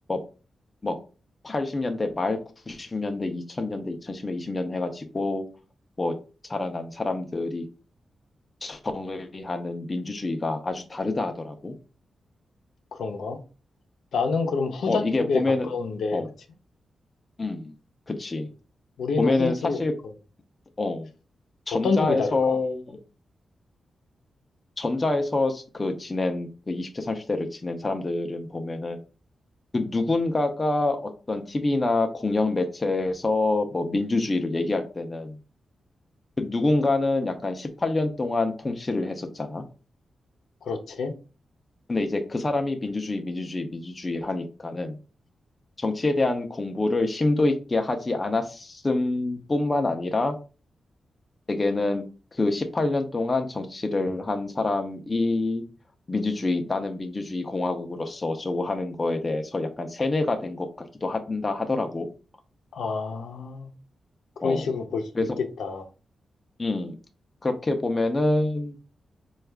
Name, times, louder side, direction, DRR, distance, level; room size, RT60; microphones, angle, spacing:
voice 1, 1.4-2.4 2.7-5.5 6.0-6.2 6.5-7.6 8.6-11.7 14.9-15.7 16.1-16.3 17.4-17.7 18.1-18.5 19.2-19.9 20.8-21.1 21.7-23.0 24.8-29.0 29.7-35.4 36.4-39.6 41.9-45.0 45.8-50.4 51.5-52.0 52.3-55.6 56.1-60.7 61.0-62.1 64.4-64.6 65.1-65.4 66.6-66.9 67.4-68.8, left 2 dB, 25° left, 0.5 m, -26 dB
voice 2, 12.9-13.4 14.1-16.2 19.0-19.8 21.8-22.6 40.6-41.1 62.7-63.7 64.4-65.0 65.4-65.9, left 4 dB, 85° left, 0.6 m, -27 dB
4.5 x 2.3 x 3.3 m
wide cardioid pair, 150°, 0 cm